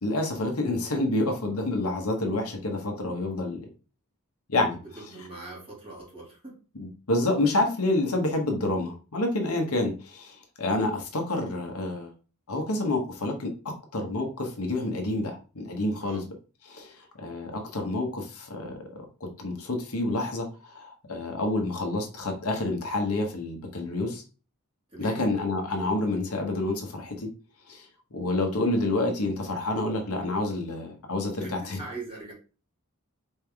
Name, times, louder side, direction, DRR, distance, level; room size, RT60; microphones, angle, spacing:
voice 1, 0.0-3.7 4.5-4.8 6.8-12.1 12.5-13.5 13.9-16.2 16.7-18.8 19.2-24.2 25.0-27.3 27.7-27.8 28.1-31.8, left 2 dB, 75° left, 3 dB, 1.1 m, -28 dB
voice 2, 4.9-6.6 16.0-16.2 24.9-25.2 31.4-32.3, right 3 dB, 25° right, -5 dB, 2.6 m, -41 dB
4.4 x 3.4 x 3.4 m, 0.34 s
head